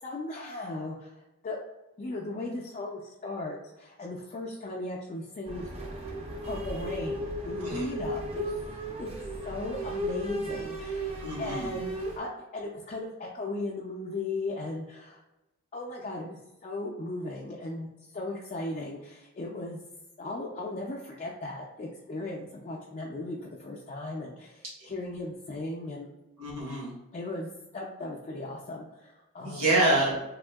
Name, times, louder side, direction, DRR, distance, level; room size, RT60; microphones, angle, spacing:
voice 1, 0.0-1.6 2.0-5.9 6.4-8.6 9.0-9.1 9.4-15.2 15.7-19.8 20.2-26.1 27.1-27.5 27.7-29.8, left 2 dB, 30° left, -2 dB, 0.3 m, -37 dB
sound 1, 5.5-12.2, right 1 dB, 25° right, 0.5 m, -35 dB
voice 2, 7.6-7.9 11.2-11.7 26.4-27.0 29.4-30.2, right 2 dB, 75° right, -6 dB, 1.2 m, -27 dB
3.5 x 2.5 x 2.2 m, 1.0 s
head